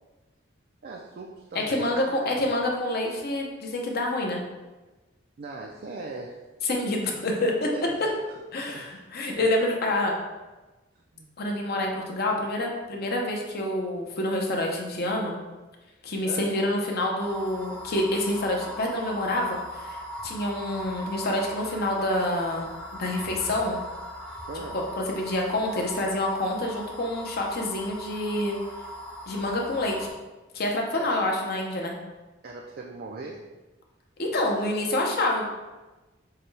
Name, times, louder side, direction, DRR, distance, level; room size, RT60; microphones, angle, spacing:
voice 1, 0.8-2.3 5.4-6.4 7.7-8.4 8.7-9.0 9.4-9.5 11.1-11.3 16.3-16.6 24.5-24.8 30.9-31.2 32.4-33.4, right 3 dB, 50° right, 0 dB, 0.4 m, -39 dB
voice 2, 1.5-4.4 6.6-7.7 8.5-10.1 11.4-15.3 16.0-22.6 23.0-23.8 24.7-28.6 29.3-30.1 30.5-32.0 34.2-35.4, left 1 dB, 55° left, 1 dB, 0.8 m, -27 dB
sound 1, 17.2-30.1, equal, 5° left, 0.6 m, -40 dB
6.7 x 2.3 x 3.2 m, 1.2 s
head